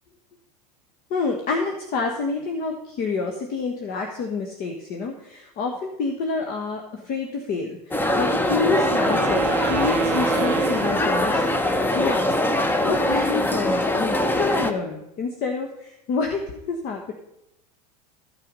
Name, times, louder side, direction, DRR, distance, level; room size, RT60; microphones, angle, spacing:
voice 1, 1.1-17.1, left 4 dB, 45° left, 3 dB, 1.3 m, -28 dB
sound 1, 7.9-14.7, left 1 dB, 10° left, 0.9 m, -22 dB
Wind instrument woodwind instrument, 8.1-11.8, right 19 dB, 60° right, 0.5 m, -31 dB
13.5 x 5.7 x 5.3 m, 0.84 s
hypercardioid pair, 100°, 20 cm